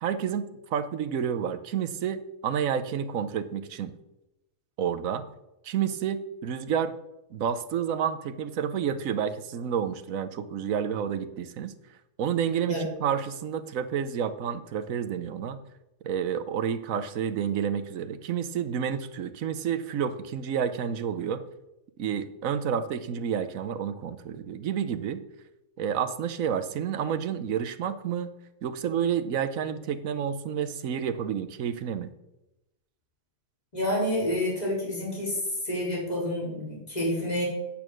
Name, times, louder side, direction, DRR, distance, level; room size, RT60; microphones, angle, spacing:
voice 1, 0.0-3.9 4.8-5.2 5.6-6.9 7.3-11.7 12.2-15.6 16.0-21.4 22.0-25.2 25.8-28.3 28.6-32.1, right 8 dB, 65° right, 11 dB, 1.1 m, -30 dB
voice 2, 33.7-35.4 35.6-37.4, left 1 dB, 25° left, -4 dB, 4.3 m, -28 dB
8.8 x 8.5 x 6.2 m, 0.93 s
omnidirectional pair, 1.7 m